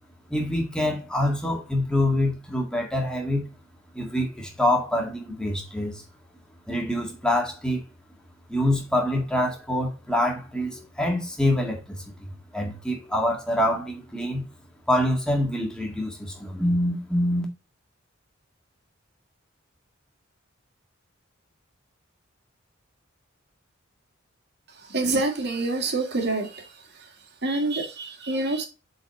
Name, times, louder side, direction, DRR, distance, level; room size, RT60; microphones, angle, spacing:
voice 1, 0.3-3.5 3.9-6.0 6.7-7.8 8.5-14.5 14.9-17.5, left 1 dB, 5° left, 1.9 m, -25 dB
voice 2, 24.9-26.6 27.4-28.6, right 2 dB, 55° right, 1.7 m, -26 dB
7.6 x 4.2 x 4.1 m
head